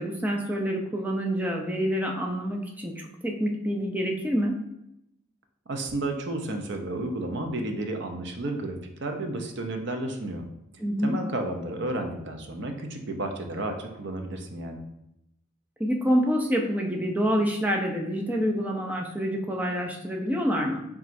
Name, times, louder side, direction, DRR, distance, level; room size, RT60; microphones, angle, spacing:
voice 1, 0.0-4.6 10.8-11.2 15.8-20.8, equal, 5° right, 1 dB, 0.4 m, -27 dB
voice 2, 5.7-10.4 11.0-14.8, right 2 dB, 55° right, 5 dB, 0.6 m, -32 dB
7.1 x 2.4 x 2.6 m, 0.84 s
head